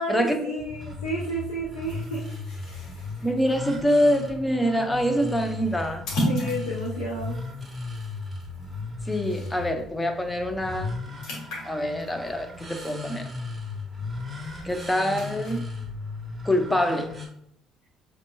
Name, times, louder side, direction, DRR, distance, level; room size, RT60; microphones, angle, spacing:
voice 1, 0.0-2.3 6.2-7.3, right 1 dB, 90° left, -4 dB, 0.6 m, -31 dB
sound 1, 0.6-17.3, left 3 dB, 5° right, 1.5 m, -36 dB
sound 2, 1.8-9.8 10.2-10.4 10.7-13.6 14.0-15.6, equal, 65° left, 1.5 m, -37 dB
voice 2, 3.2-6.0 9.1-11.0 11.6-13.3 14.6-15.7 16.4-17.1, equal, 10° left, 5 dB, 0.8 m, -25 dB
6.3 x 2.9 x 2.2 m, 0.71 s
hypercardioid pair, 55°, 0 cm